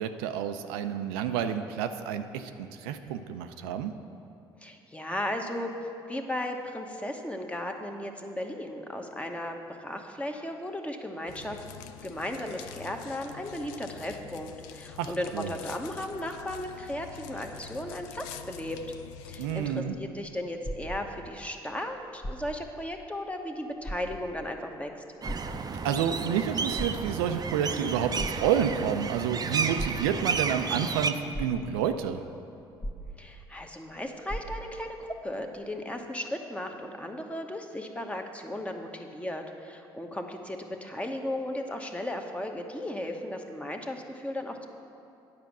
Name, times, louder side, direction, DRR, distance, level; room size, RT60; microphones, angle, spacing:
voice 1, 0.0-3.9 15.0-15.5 19.4-20.0 25.8-32.2, right 8 dB, 85° right, 8 dB, 0.4 m, -29 dB
voice 2, 4.6-11.6 12.0-18.8 19.3-25.0 33.2-44.7, left 1 dB, 10° left, 4 dB, 1.0 m, -36 dB
sound 1, 11.3-19.8, left 9 dB, 80° left, 0.4 m, -46 dB
sound 2, 20.6-21.5 22.1-22.8 23.2-23.3 23.8-24.5 25.3-26.1 26.6-27.4 28.2-28.9 29.8-30.5 31.0-31.1 31.3-32.0 32.8-33.6 33.9-34.0 34.3-34.9 35.6-35.7, equal, 35° left, 1.2 m, -38 dB
sound 3, 25.2-31.1, right 5 dB, 35° right, 0.5 m, -32 dB
9.3 x 5.1 x 7.1 m, 2.6 s
hypercardioid pair, 60°, 12 cm